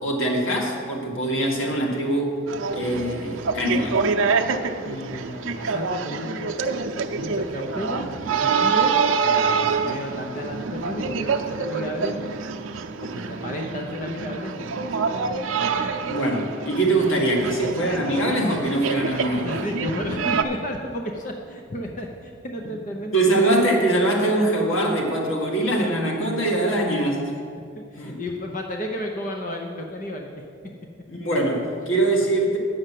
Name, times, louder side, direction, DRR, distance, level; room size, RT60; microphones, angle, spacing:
voice 1, 0.0-2.4 2.7-4.0 16.1-19.6 23.1-27.2 28.0-28.2 31.1-32.6, right 1 dB, 90° left, -1 dB, 2.0 m, -23 dB
sound 1, 2.5-20.4, right 5 dB, 85° right, 0.6 m, -26 dB
voice 2, 4.9-6.5 6.9-8.9 9.2-12.5 13.0-15.1 19.4-23.4 26.6-26.9 27.8-30.4, left 1 dB, 40° left, 2 dB, 0.7 m, -33 dB
9.6 x 6.5 x 7.5 m, 2.3 s
head